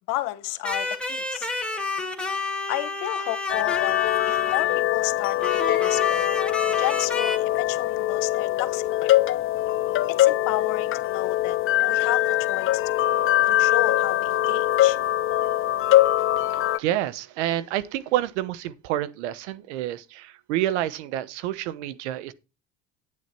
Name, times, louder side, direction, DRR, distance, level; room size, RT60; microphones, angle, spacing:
voice 1, 0.1-1.5 2.7-4.0 4.3-6.3 6.8-9.1 10.1-11.6 11.8-13.1 13.4-15.0, left 18 dB, 70° left, 1.2 m, -32 dB
sound 1, 0.6-4.9 5.4-7.4, left 3 dB, 5° left, 1.9 m, -30 dB
sound 2, 3.5-16.8, left 14 dB, 40° left, 0.5 m, -22 dB
voice 2, 16.4-22.3, right 13 dB, 80° right, 0.9 m, -28 dB
9.6 x 9.2 x 4.4 m
hypercardioid pair, 80°, 34 cm